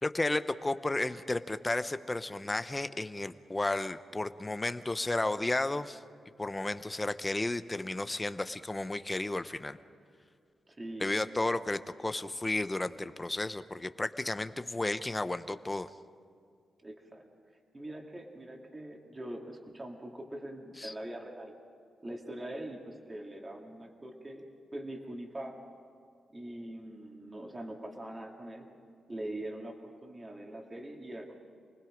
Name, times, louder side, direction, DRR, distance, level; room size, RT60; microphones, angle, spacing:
voice 1, 0.0-6.0 6.4-9.8 11.0-15.9 20.8-20.9, left 2 dB, 15° left, 11 dB, 0.7 m, -33 dB
voice 2, 10.7-11.1 16.8-17.3 17.7-21.5 22.0-24.4 24.7-25.6 26.3-28.7 29.1-31.4, right 1 dB, 25° right, 1 dB, 2.4 m, -42 dB
29.0 x 20.0 x 5.1 m, 2.3 s
wide cardioid pair, 120°, 0 cm